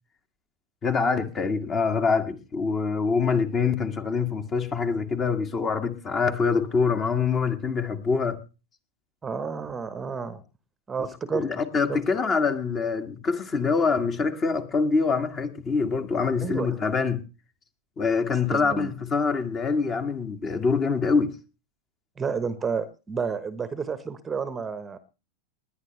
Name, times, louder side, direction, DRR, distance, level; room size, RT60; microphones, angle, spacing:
voice 1, 0.8-8.4 11.3-17.2 18.0-21.3, left 5 dB, 25° left, 1.8 m, -25 dB
voice 2, 9.2-10.4 10.9-11.6 11.9-12.0 16.4-16.7 18.5-18.9 22.2-25.0, right 5 dB, 15° right, 1.2 m, -30 dB
20.5 x 10.5 x 3.2 m
figure-of-eight pair, 90°, 0 cm